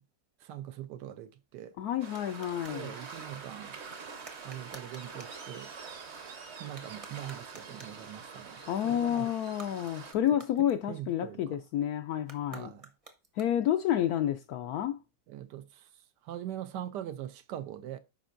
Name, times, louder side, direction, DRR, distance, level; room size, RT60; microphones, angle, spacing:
voice 1, 0.4-1.8 2.7-3.8 4.4-5.7 6.6-9.3 10.9-11.6 12.5-12.9 15.3-18.0, right 11 dB, 75° right, 1.1 m, -42 dB
sound 1, 1.3-2.8 4.2-5.4 6.6-8.1 9.4-11.2 12.2-13.8, right 3 dB, 25° right, 0.8 m, -53 dB
voice 2, 1.8-2.9 8.7-12.7 13.4-15.0, left 11 dB, 75° left, 0.9 m, -30 dB
Waves surf, 2.0-10.1, right 5 dB, 45° right, 1.0 m, -45 dB
12.5 x 5.1 x 2.5 m
omnidirectional pair, 2.0 m